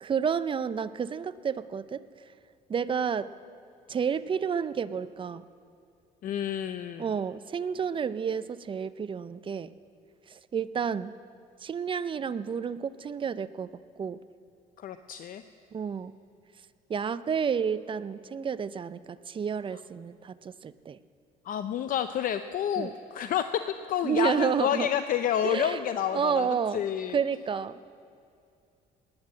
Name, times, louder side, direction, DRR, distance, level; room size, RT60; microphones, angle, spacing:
voice 1, 0.0-2.0 2.7-3.3 3.9-5.4 7.0-9.7 10.3-11.1 11.6-13.7 14.0-14.2 15.7-16.1 16.9-21.0 22.8-22.9 24.0-24.9 25.4-25.9 26.1-27.8, right 7 dB, 30° right, 15 dB, 0.5 m, -30 dB
voice 2, 6.2-7.1 14.8-15.4 21.5-23.6 23.9-27.2, left 10 dB, 55° left, 10 dB, 0.6 m, -29 dB
19.5 x 9.6 x 7.4 m, 2.5 s
cardioid pair, 110°, 17 cm